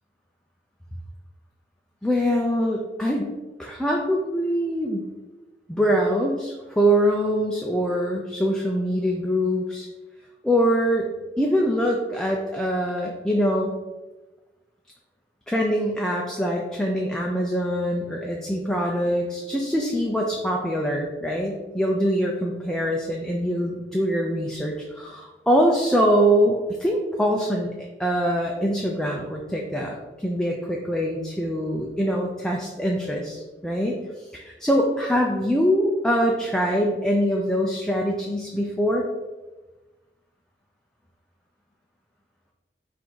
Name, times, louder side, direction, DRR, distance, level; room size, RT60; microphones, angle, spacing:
voice 1, 2.0-3.3 3.6-5.0 5.7-9.9 10.4-11.1 11.4-13.8 15.5-27.7 28.0-39.0, equal, 5° left, -1 dB, 0.3 m, -23 dB
3.8 x 2.5 x 4.5 m, 1.1 s
head